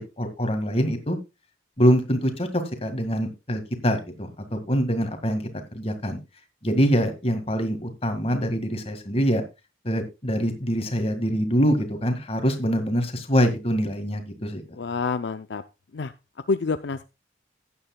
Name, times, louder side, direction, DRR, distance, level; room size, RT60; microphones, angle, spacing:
voice 1, 0.2-1.2 1.8-5.4 5.7-6.2 6.6-9.4 9.8-14.6, equal, 30° left, 7 dB, 1.9 m, -24 dB
voice 2, 14.8-15.6 15.9-16.1 16.5-17.0, left 4 dB, 65° left, 10 dB, 0.5 m, -27 dB
15.5 x 9.7 x 2.3 m, 0.25 s
head